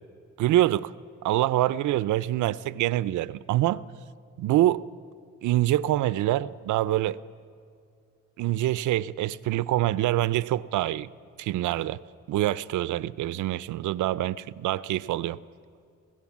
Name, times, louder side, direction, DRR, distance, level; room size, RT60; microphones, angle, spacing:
voice 1, 0.4-0.9 1.2-3.8 4.4-4.8 5.4-7.2 8.4-11.1 11.4-12.0 12.3-15.4, right 14 dB, 80° right, 18 dB, 0.6 m, -25 dB
26.5 x 16.0 x 7.3 m, 2.3 s
cardioid pair, 90°, 30 cm